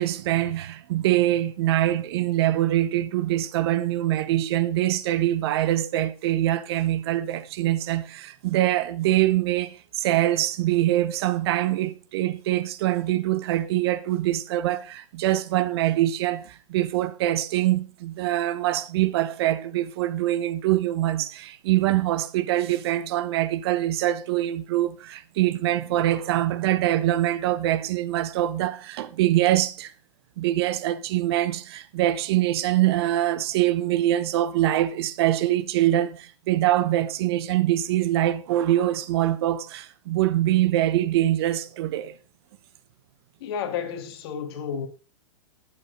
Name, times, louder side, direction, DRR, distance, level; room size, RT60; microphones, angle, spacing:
voice 1, 0.0-29.9 30.4-42.2, right 14 dB, 50° right, 0.9 m, -24 dB
voice 2, 43.4-44.9, left 7 dB, 50° left, 2.1 m, -31 dB
9.8 x 8.7 x 3.9 m
hypercardioid pair, 130°, 16 cm